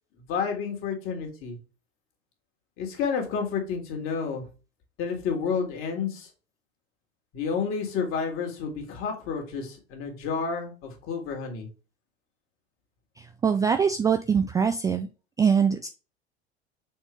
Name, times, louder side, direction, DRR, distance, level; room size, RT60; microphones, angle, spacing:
voice 1, 0.3-1.6 2.8-4.4 5.0-6.3 7.3-11.7, left 6 dB, 40° left, 2 dB, 2.3 m, -30 dB
voice 2, 13.2-15.1 15.4-15.9, right 6 dB, 10° right, 7 dB, 0.3 m, -23 dB
6.5 x 4.4 x 3.4 m, 0.33 s
figure-of-eight pair, 80°, 32 cm